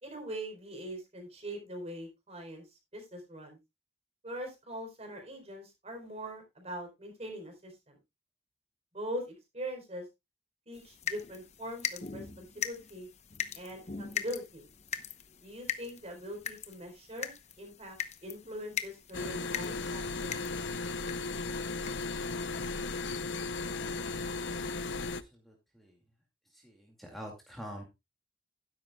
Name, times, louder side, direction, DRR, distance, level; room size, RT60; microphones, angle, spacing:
voice 1, 0.0-2.6 2.9-3.6 4.2-8.0 8.9-10.0 10.7-13.1 13.5-14.6 15.4-20.3, equal, 35° right, 4 dB, 4.2 m, -42 dB
sound 1, 10.7-21.4 21.8-22.1 22.6-22.7 23.0-23.1, left 8 dB, 40° left, 0.9 m, -40 dB
sound 2, 19.1-25.2, left 3 dB, 90° left, 0.8 m, -36 dB
voice 2, 25.0-26.0 26.5-27.8, equal, ahead, 0 dB, 2.3 m, -46 dB
12.5 x 10.5 x 2.3 m, 0.22 s
head